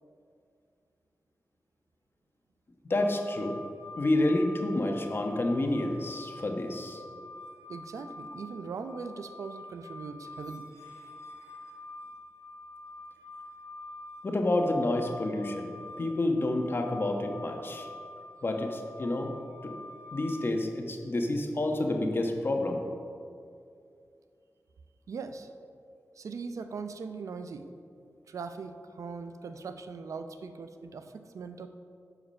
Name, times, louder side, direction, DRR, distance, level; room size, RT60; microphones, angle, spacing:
sound 1, 2.9-20.5, left 2 dB, 85° left, 2.1 m, -47 dB
voice 1, 2.9-3.6 4.0-7.0 14.2-15.7 16.0-17.9 18.4-19.7 20.1-22.8, left 1 dB, 45° left, 3 dB, 1.2 m, -29 dB
voice 2, 7.7-10.7 25.1-25.5 26.2-27.7 28.3-31.7, right 5 dB, 80° right, 9 dB, 0.5 m, -40 dB
9.7 x 4.9 x 6.2 m, 2.4 s
cardioid pair, 70°, 5 cm